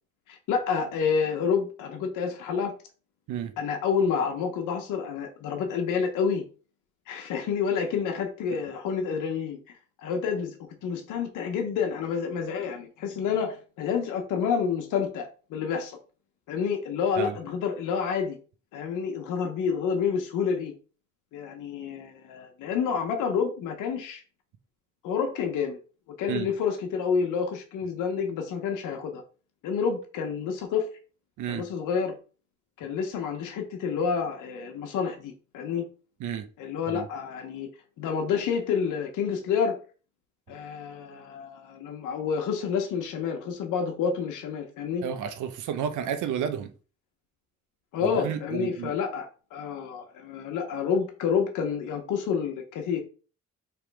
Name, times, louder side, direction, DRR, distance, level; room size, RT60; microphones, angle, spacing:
voice 1, 0.3-2.7 3.6-6.4 7.1-9.6 10.0-10.5 10.8-16.0 16.5-18.4 18.7-20.7 21.3-24.2 25.0-25.8 26.2-29.2 29.6-30.9 31.5-32.1 32.8-35.8 36.6-37.7 38.0-39.8 40.5-45.0 47.9-53.0, left 6 dB, 90° left, 0.9 m, -29 dB
voice 2, 45.0-46.7 48.0-48.9, right 8 dB, 80° right, 0.6 m, -31 dB
3.4 x 3.0 x 4.6 m
cardioid pair, 90°, 30 cm